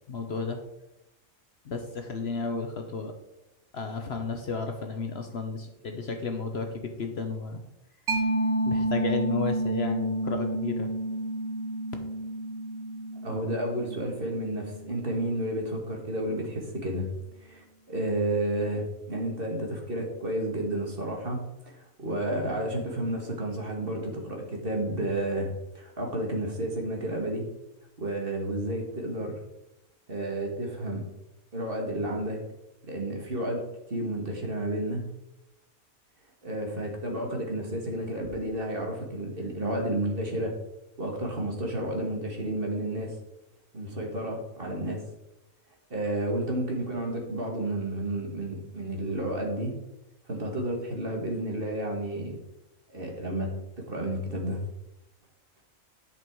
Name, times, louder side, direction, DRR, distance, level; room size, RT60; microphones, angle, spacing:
voice 1, 0.1-0.6 1.6-3.1 3.7-7.6 8.7-10.9, left 4 dB, 55° left, 5 dB, 1.0 m, -33 dB
Mallet percussion, 8.1-15.3, right 1 dB, 60° right, 1.5 m, -30 dB
voice 2, 13.2-17.1 17.4-21.4 21.7-25.5 25.7-27.4 28.0-29.4 30.1-31.0 31.5-32.4 32.8-33.6 33.9-35.0 36.4-40.5 41.0-43.1 43.7-45.0 45.9-49.7 50.3-52.4 52.9-53.5 53.8-54.6, right 1 dB, 40° right, 1 dB, 2.0 m, -31 dB
10.5 x 5.4 x 4.7 m, 0.90 s
omnidirectional pair, 1.5 m